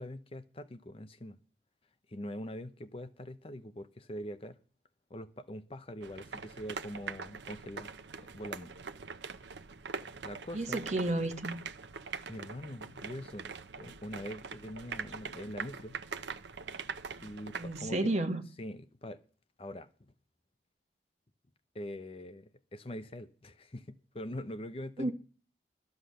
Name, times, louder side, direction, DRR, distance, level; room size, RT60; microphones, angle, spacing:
voice 1, 0.0-1.4 2.1-4.6 5.1-7.9 8.3-8.7 10.2-10.8 12.3-16.0 17.2-18.1 18.6-19.2 19.6-20.1 21.7-25.1, left 1 dB, 30° left, 0.7 m, -43 dB
sound 1, 6.0-17.8, right 5 dB, 85° right, 0.7 m, -43 dB
voice 2, 10.5-11.6 17.5-18.4 25.0-25.1, right 2 dB, 40° right, 1.6 m, -31 dB
13.0 x 8.0 x 6.7 m
head